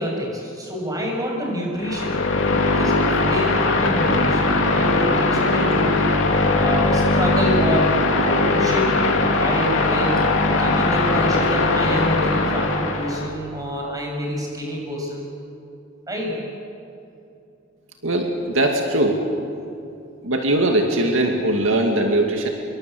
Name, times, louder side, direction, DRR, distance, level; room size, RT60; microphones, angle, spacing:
voice 1, 0.0-2.2 2.6-6.2 6.6-9.0 9.4-10.2 10.6-15.3 16.1-16.4, equal, 20° right, 0 dB, 7.0 m, -27 dB
sound 1, 1.8-13.3, left 2 dB, 70° left, 2.9 m, -20 dB
voice 2, 18.0-19.2 20.2-22.5, right 1 dB, 75° right, 2 dB, 2.4 m, -20 dB
26.5 x 23.5 x 8.0 m, 2.7 s
head